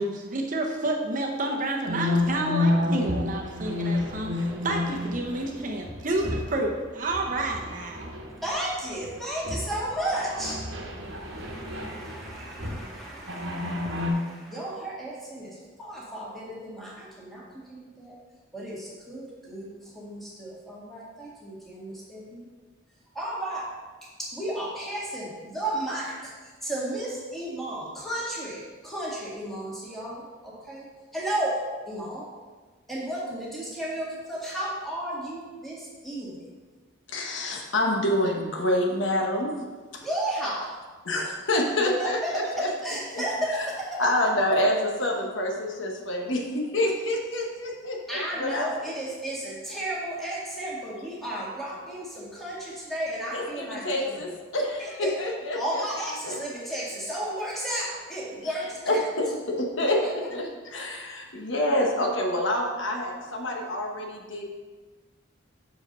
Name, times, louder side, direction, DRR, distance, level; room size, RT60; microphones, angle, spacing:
voice 1, 0.0-8.1, right 2 dB, 40° right, 1 dB, 0.7 m, -30 dB
sound 1, 1.9-6.7 7.0-8.6 8.9-9.1 9.4-12.9 13.3-14.1, left 2 dB, 60° right, 1.1 m, -30 dB
voice 2, 8.4-10.6 10.9-18.2 18.5-19.7 19.9-22.5 23.1-23.7 24.2-30.9 31.1-32.3 32.9-36.4 40.0-40.8 42.0-44.0 48.1-54.1 54.8-55.1 55.5-59.0 59.9-60.1, right 1 dB, ahead, -6 dB, 1.9 m, -33 dB
voice 3, 37.1-39.5 39.9-40.1 41.0-42.7 43.1-43.2 44.0-48.8 53.3-55.8 56.2-56.4 58.9-60.0 60.3-64.4, left 1 dB, 70° left, 1 dB, 1.1 m, -27 dB
6.6 x 5.0 x 5.4 m, 1.4 s
head